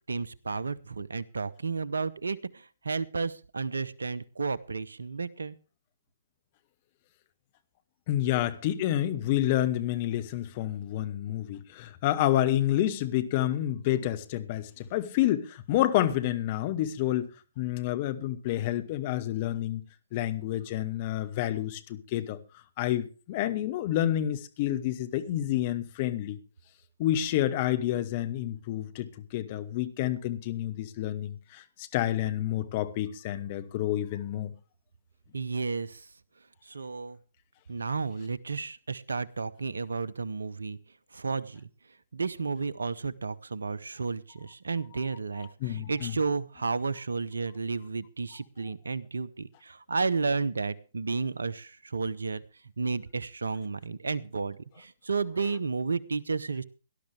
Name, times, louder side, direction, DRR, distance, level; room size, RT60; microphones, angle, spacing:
voice 1, 0.1-5.6 35.3-36.0 36.7-37.2 37.7-40.8 41.1-41.7 42.1-52.4 52.8-56.6, right 4 dB, 70° right, 0.9 m, -32 dB
voice 2, 8.1-17.3 17.6-19.8 20.1-22.4 22.8-26.4 27.0-34.5 45.6-46.1, left 13 dB, 35° left, 1.4 m, -29 dB
18.0 x 12.0 x 3.4 m
figure-of-eight pair, 130°, 0 cm